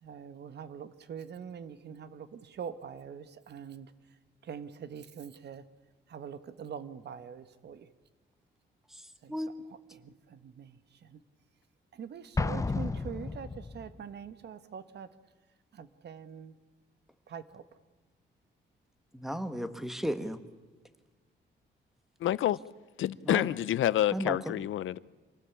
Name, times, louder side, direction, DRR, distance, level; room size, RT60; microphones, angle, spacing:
voice 1, 0.0-4.2 4.4-5.7 6.1-7.9 9.2-11.2 11.9-15.1 15.7-16.6 17.3-17.6, right 7 dB, 60° right, 1.4 m, -44 dB
voice 2, 9.3-9.8 19.1-20.4 23.3-23.5 24.1-24.5, equal, ahead, 1.5 m, -34 dB
Explosion, 12.4-14.0, left 3 dB, 15° left, 0.8 m, -32 dB
voice 3, 22.2-22.6 23.0-25.0, left 12 dB, 80° left, 0.7 m, -28 dB
26.0 x 19.0 x 8.4 m
wide cardioid pair, 160°, 20 cm